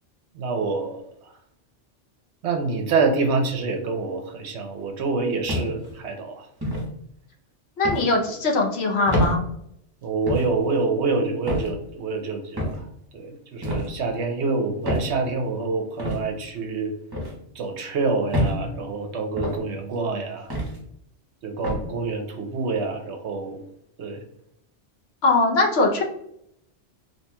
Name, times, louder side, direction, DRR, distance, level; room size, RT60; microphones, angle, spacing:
voice 1, 0.3-1.3 2.4-6.5 10.0-12.9 13.1-17.0 17.5-20.5 21.4-23.6 24.0-24.2, right 4 dB, 70° right, 4 dB, 0.9 m, -26 dB
sound 1, 5.5-5.9 6.6-6.9 7.8-8.1 9.1-9.3 10.3-10.5 11.5-11.7 12.6-12.8 13.6-13.9 14.8-15.1 16.0-16.2 17.1-17.3 18.3-18.6 19.4-19.6 20.5-20.8 21.6-21.8, equal, 20° right, 1.0 m, -26 dB
voice 2, 7.8-9.4 25.2-26.0, left 2 dB, 65° left, 0 dB, 0.9 m, -21 dB
4.3 x 3.0 x 2.2 m, 0.74 s
omnidirectional pair, 1.2 m